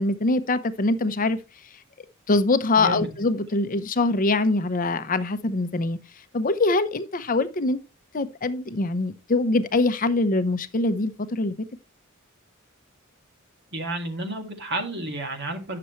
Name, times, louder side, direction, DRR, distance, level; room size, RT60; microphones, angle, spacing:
voice 1, 0.0-1.4 2.3-6.0 6.3-7.8 8.1-11.5, left 2 dB, 40° left, 0.7 m, -23 dB
voice 2, 2.8-3.1 13.7-15.8, right 2 dB, 55° right, 2.0 m, -31 dB
9.9 x 6.8 x 3.1 m
head